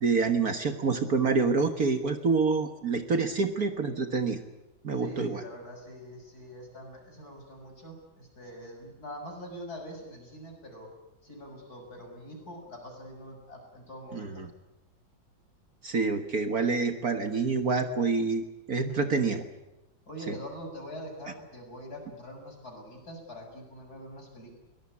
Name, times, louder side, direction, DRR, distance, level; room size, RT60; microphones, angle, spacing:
voice 1, 0.0-4.4 4.8-5.4 14.1-14.5 15.8-19.4 20.3-20.4, right 4 dB, 50° right, 8 dB, 1.9 m, -27 dB
voice 2, 5.0-10.9 11.2-14.4 20.1-24.5, equal, 45° left, 2 dB, 7.2 m, -44 dB
23.0 x 19.0 x 9.7 m, 0.97 s
omnidirectional pair, 2.2 m